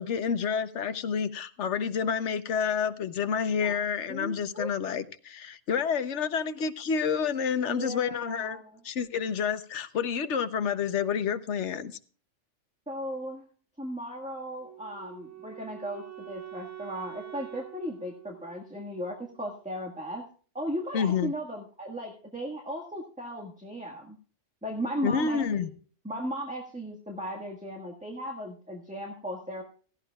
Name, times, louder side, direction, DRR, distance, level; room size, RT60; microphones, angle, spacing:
voice 1, 0.0-11.9 20.9-21.3 25.0-25.7, left 6 dB, 70° left, 12 dB, 1.2 m, -29 dB
voice 2, 4.1-4.7 7.7-8.8 12.9-13.4 13.8-20.2 20.5-24.2 24.6-25.7 26.0-29.6, equal, 5° right, 0 dB, 1.6 m, -36 dB
Wind instrument woodwind instrument, 14.6-19.7, right 12 dB, 70° right, 1.3 m, -46 dB
16.5 x 15.0 x 2.3 m, 0.41 s
omnidirectional pair, 1.3 m